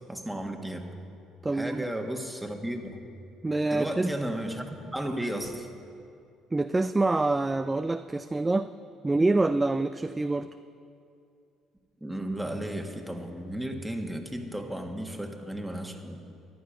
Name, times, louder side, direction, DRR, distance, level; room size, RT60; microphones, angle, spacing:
voice 1, 0.1-0.9 1.5-3.0 3.7-5.7 12.0-16.2, right 1 dB, 5° right, 3 dB, 1.7 m, -34 dB
voice 2, 1.4-1.9 3.4-4.1 6.5-8.7 9.0-10.5, right 2 dB, 20° right, 10 dB, 0.4 m, -26 dB
14.5 x 11.0 x 5.1 m, 2.4 s
hypercardioid pair, 60°, 0 cm